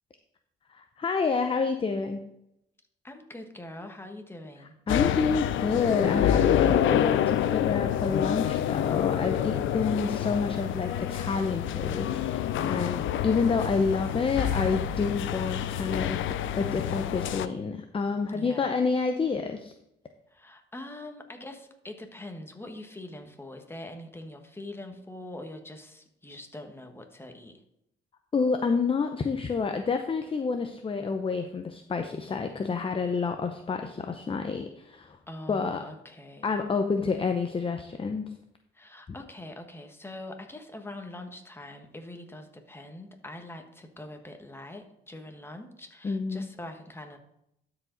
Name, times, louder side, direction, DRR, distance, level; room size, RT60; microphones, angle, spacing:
voice 1, 0.7-2.2 4.9-19.7 28.3-35.2 35.5-35.8 36.4-38.3 46.0-46.5, left 4 dB, 25° left, 6 dB, 0.7 m, -29 dB
voice 2, 3.0-4.7 18.3-18.7 20.3-27.6 35.3-36.5 38.7-47.2, left 1 dB, 10° left, 5 dB, 1.3 m, -43 dB
sound 1, 4.9-17.5, left 10 dB, 75° left, 0.5 m, -27 dB
12.5 x 5.0 x 3.9 m, 0.80 s
cardioid pair, 90°, 20 cm